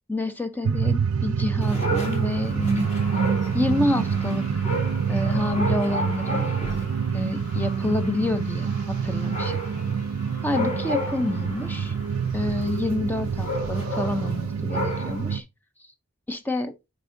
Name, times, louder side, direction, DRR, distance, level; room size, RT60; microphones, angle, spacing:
voice 1, 0.1-2.9 3.5-4.7 5.1-6.5 7.1-9.6 10.4-11.9 12.3-15.4 15.8-15.9 16.3-16.7, left 2 dB, 10° left, 0.4 m, -28 dB
sound 1, 0.6-15.4, right 6 dB, 85° right, 0.4 m, -27 dB
Dog, 1.6-15.4, left 1 dB, 30° left, 2.3 m, -34 dB
9.8 x 4.2 x 2.6 m
head